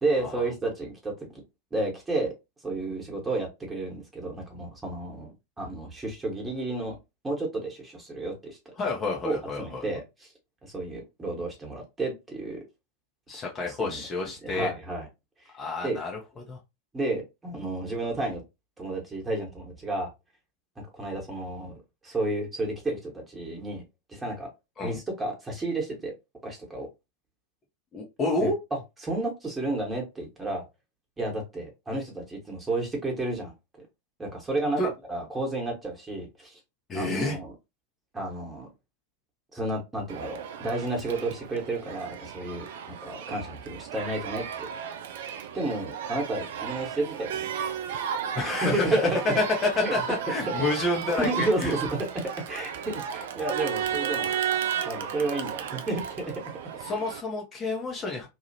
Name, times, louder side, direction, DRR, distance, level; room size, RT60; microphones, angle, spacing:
voice 1, 0.0-1.1 1.7-2.3 2.6-7.0 7.2-8.6 9.2-10.3 10.6-12.6 13.8-14.0 14.4-15.1 15.4-15.5 15.8-16.0 16.9-18.4 18.8-20.1 21.0-21.8 22.0-23.8 24.1-24.5 24.8-26.1 26.4-26.9 28.4-30.6 31.2-33.5 34.2-36.6 36.9-37.5 38.1-38.7 39.5-44.7 45.5-47.5 48.4-49.4 49.8-50.0 50.5-50.9 51.2-51.8 52.1-54.3 54.8-56.3, right 2 dB, 15° right, 1.2 m, -31 dB
voice 2, 8.8-9.8 13.3-14.7 15.5-16.2 16.5-16.6 24.8-25.0 27.9-28.6 34.8-34.9 36.9-37.4 48.3-49.1 49.4-51.8 56.8-58.3, left 2 dB, 25° left, 0.7 m, -29 dB
Crowd, 40.1-57.2, right 8 dB, 55° right, 0.4 m, -34 dB
2.8 x 2.4 x 2.7 m
figure-of-eight pair, 90°, 0 cm